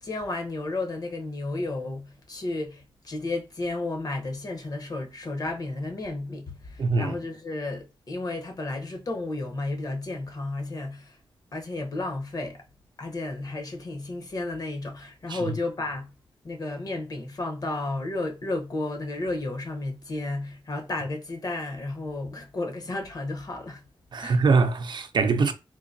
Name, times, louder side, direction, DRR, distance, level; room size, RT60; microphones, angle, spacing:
voice 1, 0.0-11.2 11.5-12.6 13.0-16.1 16.4-23.8 24.2-24.4, left 2 dB, 45° left, 0.8 m, -32 dB
voice 2, 6.8-7.1 15.3-15.4 24.1-25.5, right 4 dB, 55° right, 0.5 m, -23 dB
3.8 x 2.6 x 2.6 m
wide cardioid pair, 145°, 9 cm